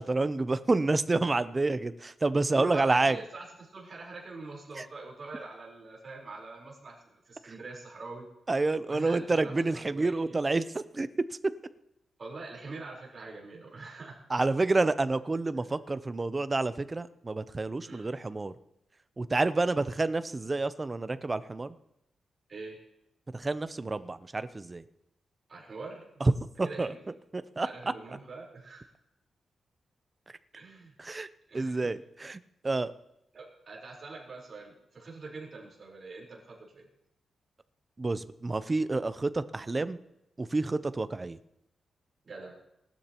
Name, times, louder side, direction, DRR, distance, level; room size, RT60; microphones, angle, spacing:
voice 1, 0.0-3.2 4.8-4.9 8.5-11.1 14.3-18.5 19.2-21.7 23.3-24.8 26.2-26.9 27.3-27.7 31.0-31.3 31.5-32.9 38.0-40.0 40.4-41.4, right 3 dB, 20° right, 13 dB, 0.5 m, -29 dB
voice 2, 2.5-8.3 8.9-10.4 12.2-14.2 15.6-15.7 17.8-18.0 22.5-22.8 25.5-26.1 26.6-27.0 27.6-28.9 30.5-30.9 31.5-31.9 33.3-36.9 42.2-42.6, right 3 dB, 35° right, -3 dB, 4.0 m, -44 dB
19.0 x 12.5 x 2.9 m, 0.84 s
wide cardioid pair, 165°, 0 cm